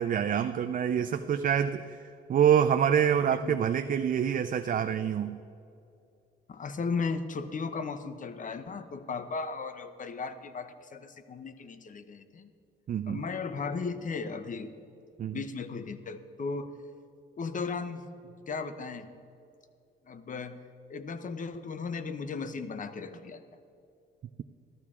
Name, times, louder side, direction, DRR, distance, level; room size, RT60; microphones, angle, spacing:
voice 1, 0.0-2.0 2.3-5.4 12.9-13.2 15.2-15.4, right 8 dB, 45° right, 9 dB, 0.4 m, -26 dB
voice 2, 6.5-12.5 13.1-14.7 15.3-16.7 17.4-19.1 20.1-20.6 20.9-23.4, left 4 dB, 40° left, 11 dB, 0.8 m, -36 dB
14.5 x 13.0 x 3.7 m, 2.5 s
cardioid pair, 90°, 20 cm